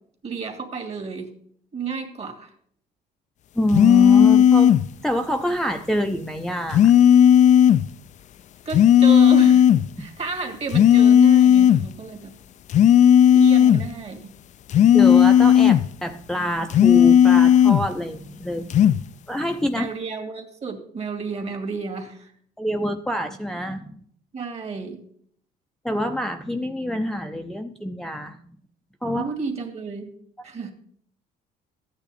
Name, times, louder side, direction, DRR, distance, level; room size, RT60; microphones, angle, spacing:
voice 1, 0.2-1.3 1.7-2.5 8.7-9.7 10.0-12.3 13.3-14.3 19.7-22.3 24.3-25.0 29.1-30.1 30.4-30.7, right 5 dB, 40° right, 4 dB, 2.3 m, -31 dB
voice 2, 3.6-4.7 5.0-6.9 10.0-10.1 14.9-18.7 19.3-19.9 22.6-24.0 25.8-28.6 29.0-29.3, equal, 5° left, 4 dB, 0.6 m, -26 dB
sound 1, 3.7-4.9 6.7-7.9 8.7-9.9 10.7-11.9 12.7-13.9 14.7-15.9 16.7-17.9 18.7-19.0, left 9 dB, 45° left, 0.4 m, -14 dB
14.0 x 9.0 x 4.2 m, 0.63 s
cardioid pair, 110°, 17 cm